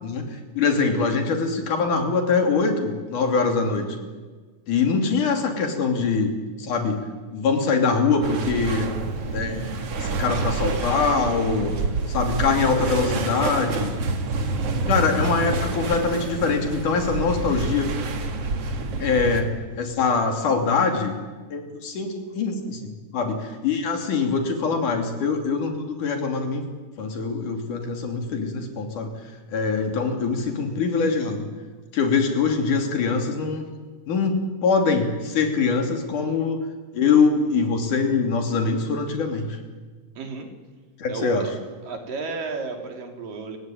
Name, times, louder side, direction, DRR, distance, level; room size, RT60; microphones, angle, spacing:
voice 1, 0.0-4.0 4.7-6.3 6.6-7.0 7.3-8.9 9.3-9.7 10.0-11.8 12.1-13.9 14.9-17.9 19.0-19.5 19.8-21.2 21.5-26.6 27.0-29.1 29.5-31.5 31.9-33.6 34.1-36.6 36.9-39.6 41.0-41.5, left 4 dB, 70° left, 4 dB, 4.2 m, -23 dB
sound 1, 8.2-19.4, right 3 dB, 50° right, 2.7 m, -27 dB
voice 2, 40.2-40.5 41.1-41.5 41.8-43.6, right 4 dB, 85° right, 3 dB, 4.8 m, -32 dB
29.0 x 16.0 x 9.3 m, 1.4 s
omnidirectional pair, 3.8 m